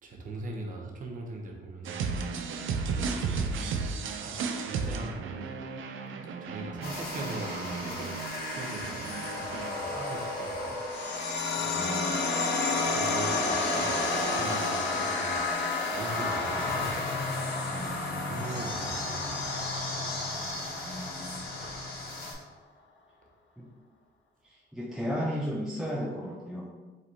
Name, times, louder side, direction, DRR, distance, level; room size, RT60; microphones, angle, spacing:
voice 1, 0.0-2.0 3.0-3.6 4.2-5.7 6.4-8.2 8.4-9.0 9.3-11.2 11.6-11.9 12.8-15.4 15.9-17.0 18.2-19.6 21.6-21.8, right 2 dB, 40° right, 1 dB, 0.8 m, -41 dB
sound 1, 1.8-9.7, right 5 dB, 70° right, 0.5 m, -34 dB
sound 2, 6.8-22.3, left 2 dB, 45° left, 1.3 m, -33 dB
sound 3, 10.9-21.9, left 4 dB, 65° left, 0.6 m, -34 dB
voice 2, 11.8-12.3 17.8-18.0 20.8-21.4 23.6-23.7 24.4-26.7, equal, ahead, -3 dB, 0.4 m, -35 dB
5.1 x 3.3 x 2.8 m, 1.3 s
cardioid pair, 150°, 21 cm